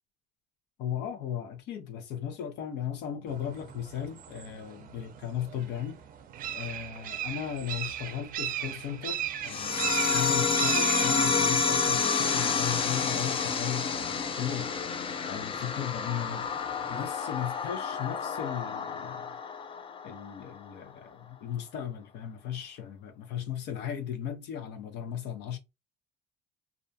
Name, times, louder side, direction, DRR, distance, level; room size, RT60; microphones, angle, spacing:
voice 1, 0.8-6.0 6.5-14.7 15.3-19.4 20.0-25.6, left 9 dB, 85° left, 0.6 m, -36 dB
sound 1, 3.3-17.1, right 11 dB, 55° right, 0.4 m, -39 dB
sound 2, 9.5-20.5, left 5 dB, 30° left, 0.4 m, -29 dB
2.5 x 2.2 x 2.6 m
cardioid pair, 110°, 17 cm